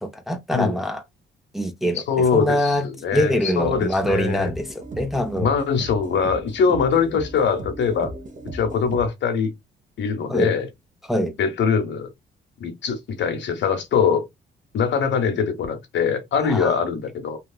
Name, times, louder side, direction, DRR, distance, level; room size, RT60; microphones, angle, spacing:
voice 1, 0.0-1.0 1.5-2.0 2.3-2.9 3.1-5.5 10.3-10.5 11.1-11.3 16.4-16.7, equal, ahead, 0.6 m, -23 dB
voice 2, 1.9-4.5 5.4-8.1 8.5-9.5 10.0-10.7 11.4-12.1 12.6-14.3 14.7-17.4, left 6 dB, 65° left, 1.2 m, -22 dB
sound 1, 3.6-9.1, right 1 dB, 40° right, 0.8 m, -36 dB
3.2 x 2.3 x 2.3 m
cardioid pair, 90°, 20 cm